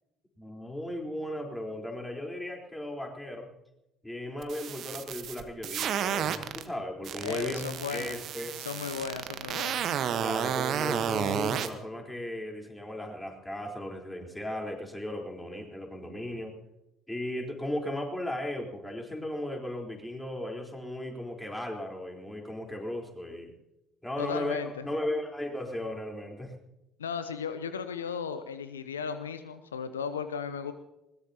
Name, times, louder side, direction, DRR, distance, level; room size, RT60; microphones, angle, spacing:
voice 1, 0.4-3.5 4.0-8.6 10.2-16.6 17.1-23.5 24.0-26.6, left 1 dB, 10° left, 1 dB, 4.0 m, -36 dB
sound 1, 4.4-6.6 7.0-11.7, right 9 dB, 50° right, 1.2 m, -31 dB
voice 2, 7.2-8.2 8.6-9.9 24.2-24.8 27.0-30.7, left 6 dB, 80° left, 11 dB, 0.7 m, -36 dB
21.0 x 19.5 x 2.9 m, 0.92 s
figure-of-eight pair, 55°, 0 cm